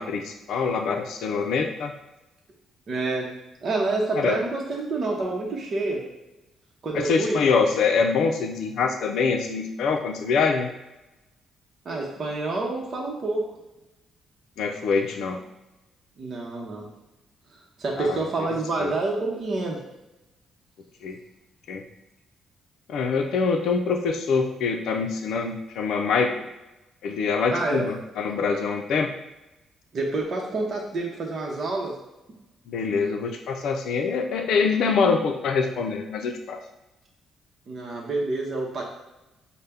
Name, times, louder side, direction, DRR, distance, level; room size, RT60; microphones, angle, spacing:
voice 1, 0.0-1.9 4.2-4.4 6.9-10.7 14.6-15.4 17.9-18.3 18.8-18.9 21.0-21.2 21.7-21.8 22.9-26.5 27.0-29.1 32.7-36.6, left 5 dB, 75° left, 5 dB, 0.5 m, -24 dB
voice 2, 2.9-3.3 3.6-6.1 6.8-7.4 11.8-13.5 16.2-16.9 17.8-19.8 27.5-27.9 29.9-32.0 37.7-38.8, right 2 dB, 50° right, -2 dB, 0.8 m, -28 dB
5.5 x 2.1 x 3.4 m, 0.99 s
cardioid pair, 90°, 0 cm